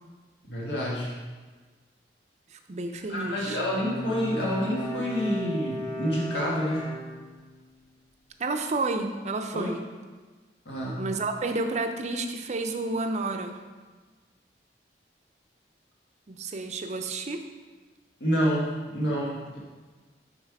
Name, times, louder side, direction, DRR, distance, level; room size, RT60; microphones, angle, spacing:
voice 1, 0.4-1.1 3.1-6.9 9.5-9.7 10.6-11.0 18.2-19.6, equal, 80° left, -5 dB, 1.7 m, -28 dB
voice 2, 2.5-3.6 8.4-9.8 11.0-13.6 16.3-17.5, right 3 dB, 40° right, 6 dB, 0.5 m, -30 dB
Bowed string instrument, 3.2-7.6, equal, 20° left, 1.5 m, -36 dB
5.6 x 4.3 x 4.7 m, 1.4 s
head